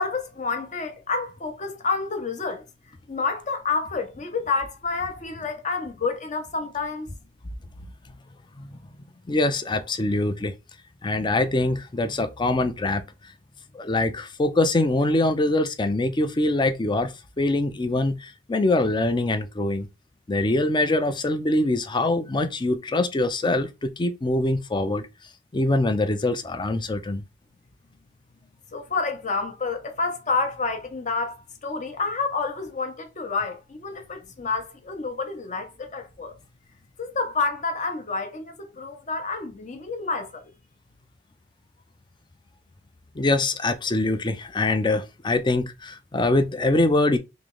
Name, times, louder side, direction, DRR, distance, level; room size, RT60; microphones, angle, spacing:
voice 1, 0.0-2.6 3.1-7.1 28.7-36.4 37.0-40.4, left 4 dB, 40° left, 0.8 m, -29 dB
voice 2, 9.3-10.5 11.0-13.0 13.7-17.1 17.4-19.9 20.3-25.1 25.5-27.2 43.2-47.2, left 2 dB, 25° left, 0.5 m, -23 dB
3.2 x 3.0 x 3.8 m
head